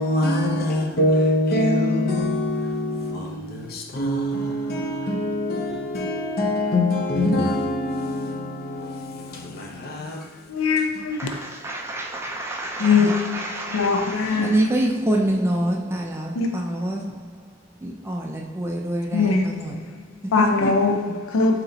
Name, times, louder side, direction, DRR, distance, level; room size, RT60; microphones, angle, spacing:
voice 1, 0.0-10.3, left 1 dB, 50° left, 0.7 m, -24 dB
voice 2, 10.5-11.4 12.8-14.5 16.4-16.6 19.1-19.6 20.3-21.6, left 4 dB, 85° left, 0.4 m, -21 dB
voice 3, 11.1-21.0, right 1 dB, 15° right, 0.3 m, -27 dB
4.1 x 2.9 x 3.9 m
head